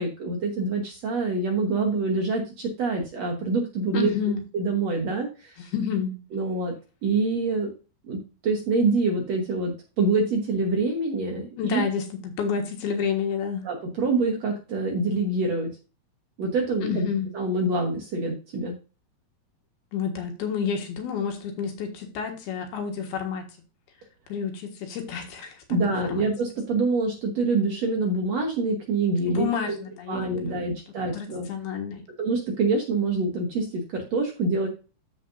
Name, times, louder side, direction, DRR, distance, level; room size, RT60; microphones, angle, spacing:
voice 1, 0.0-5.6 6.3-6.7 7.0-7.7 8.1-11.8 13.6-15.7 16.4-17.1 17.3-18.7 25.7-29.8 30.1-31.5 32.2-34.7, right 3 dB, 60° right, 1 dB, 1.9 m, -26 dB
voice 2, 3.9-4.4 5.6-6.2 11.6-13.7 16.8-17.3 19.9-23.5 24.3-26.2 29.3-30.8 31.1-32.0, left 7 dB, 75° left, 4 dB, 3.4 m, -30 dB
13.5 x 5.2 x 2.7 m, 0.32 s
omnidirectional pair, 4.6 m